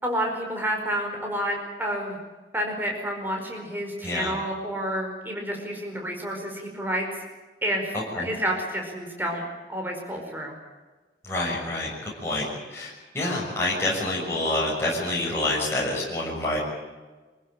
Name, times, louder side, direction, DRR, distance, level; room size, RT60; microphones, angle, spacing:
voice 1, 0.0-2.2 2.5-7.1 7.6-9.4 9.7-10.5, equal, 10° right, 1 dB, 5.0 m, -29 dB
voice 2, 7.9-8.3 11.2-16.6, left 1 dB, 15° left, -4 dB, 6.5 m, -27 dB
26.0 x 15.5 x 8.9 m, 1.3 s
head